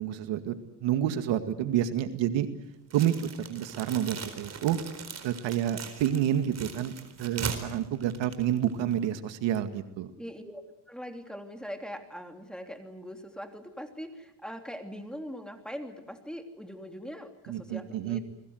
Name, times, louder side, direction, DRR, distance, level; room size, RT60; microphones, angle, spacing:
voice 1, 0.0-2.5 2.9-4.8 5.2-6.9 7.2-10.1 17.5-18.2, right 10 dB, 65° right, 9 dB, 2.2 m, -29 dB
sound 1, 2.9-9.0, right 6 dB, 30° right, 4.3 m, -40 dB
voice 2, 10.2-10.6 10.9-18.2, equal, ahead, 5 dB, 3.1 m, -41 dB
29.5 x 21.0 x 8.0 m, 0.87 s
cardioid pair, 120°, 48 cm